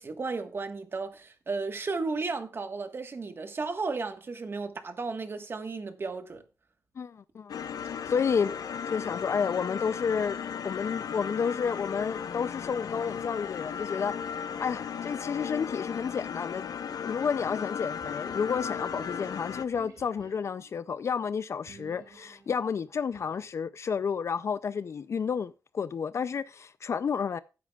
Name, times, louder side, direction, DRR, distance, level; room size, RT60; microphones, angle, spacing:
voice 1, 0.0-6.4, right 4 dB, 40° right, 1.3 m, -34 dB
voice 2, 7.0-7.6 8.1-8.5 8.9-10.4 10.6-14.2 14.6-16.7 17.0-27.4, left 6 dB, 50° left, 0.4 m, -31 dB
sound 1, 7.5-19.7, left 7 dB, 80° left, 0.8 m, -36 dB
sound 2, 18.0-20.8 21.7-23.6, right 3 dB, 80° right, 4.6 m, -53 dB
15.5 x 8.4 x 2.3 m
wide cardioid pair, 135°, 6 cm